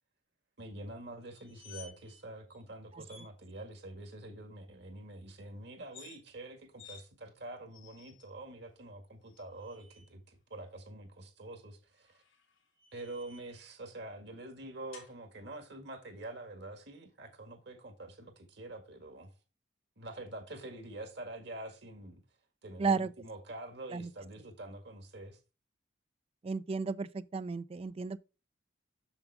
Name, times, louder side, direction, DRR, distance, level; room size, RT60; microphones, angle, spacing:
voice 1, 0.6-12.2 12.9-19.3 20.0-22.2 22.6-25.4, right 1 dB, 60° right, 1.9 m, -46 dB
sound 1, 1.3-2.2 2.5-2.6 3.0-3.3 5.8-6.2 6.8-7.0 7.7-8.3 9.3-10.1 12.0-13.6 14.9-15.1, left 5 dB, 90° left, 2.5 m, -55 dB
voice 2, 22.8-23.1 23.9-24.1 26.4-28.2, right 4 dB, 30° right, 0.3 m, -33 dB
7.1 x 7.0 x 3.4 m
head